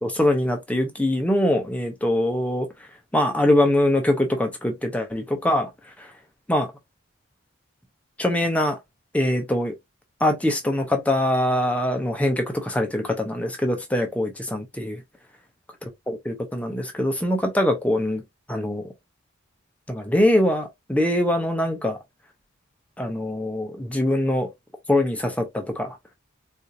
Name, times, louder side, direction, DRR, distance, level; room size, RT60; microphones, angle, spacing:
voice 1, 0.0-2.7 3.1-5.7 6.5-6.7 8.2-8.8 9.1-9.7 10.2-15.0 16.1-18.2 18.5-18.9 19.9-22.0 23.0-24.5 24.9-26.0, left 1 dB, 5° left, 0.5 m, -23 dB
4.2 x 2.5 x 2.4 m
head